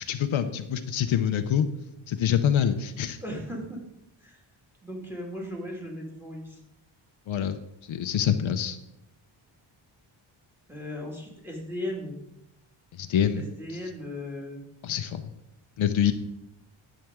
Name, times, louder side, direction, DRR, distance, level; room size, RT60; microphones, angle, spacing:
voice 1, 0.0-1.7 2.1-3.2 7.3-7.6 7.9-8.8 13.0-13.4 14.8-15.3 15.8-16.1, left 9 dB, 75° left, 8 dB, 0.8 m, -25 dB
voice 2, 3.2-3.8 4.2-4.4 4.8-6.6 10.7-12.2 13.3-14.6, left 1 dB, 5° right, -1 dB, 2.0 m, -37 dB
10.5 x 8.5 x 3.6 m, 0.85 s
wide cardioid pair, 155°, 48 cm